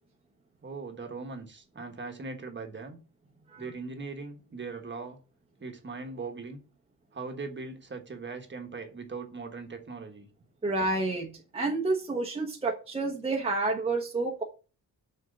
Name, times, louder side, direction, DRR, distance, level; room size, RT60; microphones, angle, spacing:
voice 1, 0.6-3.0 3.6-5.2 5.6-6.6 7.1-10.3, right 4 dB, 30° right, 1.3 m, -40 dB
voice 2, 10.6-14.4, right 2 dB, 15° right, 1.0 m, -29 dB
6.3 x 4.5 x 6.6 m
wide cardioid pair, 175°, 36 cm